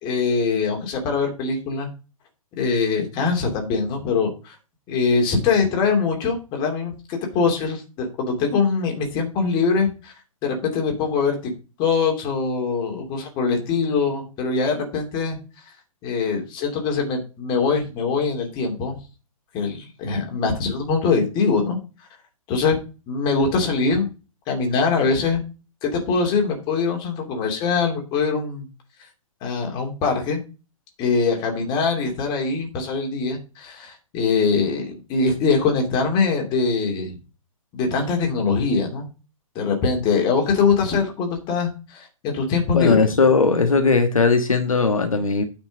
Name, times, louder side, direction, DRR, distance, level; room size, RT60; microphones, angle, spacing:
voice 1, 0.0-1.9 2.6-4.5 4.9-10.1 10.4-11.4 11.8-15.4 16.0-19.0 19.5-21.8 22.5-22.8 23.1-24.1 24.5-25.4 25.8-28.7 29.4-30.4 31.0-37.2 37.7-39.1 39.5-43.1, left 4 dB, 25° left, 2.8 m, -22 dB
voice 2, 42.7-45.4, left 4 dB, 70° left, 1.4 m, -18 dB
9.2 x 5.3 x 5.0 m
figure-of-eight pair, 120°, 18 cm